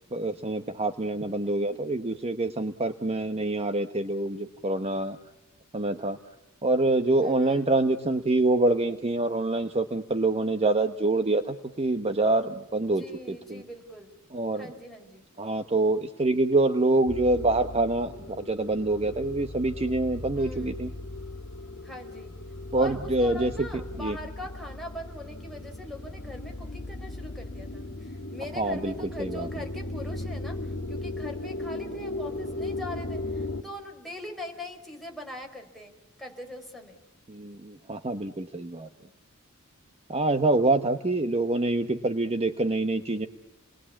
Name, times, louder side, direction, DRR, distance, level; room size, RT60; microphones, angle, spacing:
voice 1, 0.1-5.2 5.7-6.2 6.6-13.6 14.3-14.7 15.4-20.9 22.7-24.2 28.6-29.5 37.3-38.9 40.1-43.3, right 2 dB, 30° right, 8 dB, 1.1 m, -26 dB
voice 2, 7.2-7.6 12.8-14.2 14.5-15.3 20.3-20.8 21.8-22.3 22.7-30.6 30.9-35.9 36.2-36.9, left 1 dB, ahead, 1 dB, 4.9 m, -42 dB
sound 1, 17.1-33.6, left 2 dB, 60° left, 2.1 m, -37 dB
30.0 x 21.5 x 8.6 m, 0.94 s
head